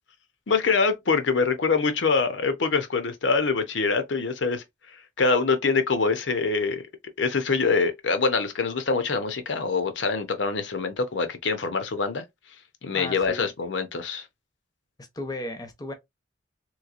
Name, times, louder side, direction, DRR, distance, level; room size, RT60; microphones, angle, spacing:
voice 1, 0.5-4.6 4.9-6.8 7.2-12.2 12.8-14.3, left 4 dB, 85° left, 0.7 m, -24 dB
voice 2, 12.9-13.5 15.0-15.9, left 1 dB, 20° left, 0.6 m, -35 dB
3.1 x 3.1 x 2.4 m
head